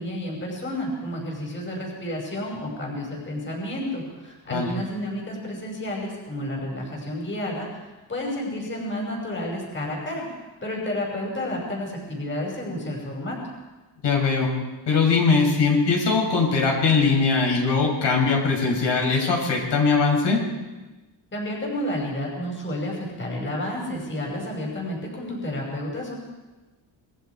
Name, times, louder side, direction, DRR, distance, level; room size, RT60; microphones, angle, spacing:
voice 1, 0.0-7.8 8.1-10.3 10.6-13.4 21.3-26.2, left 1 dB, 25° left, -1 dB, 5.4 m, -31 dB
voice 2, 14.0-14.5 14.9-20.4, left 4 dB, 70° left, -1 dB, 6.9 m, -21 dB
27.5 x 22.0 x 4.7 m, 1.1 s
wide cardioid pair, 150°, 43 cm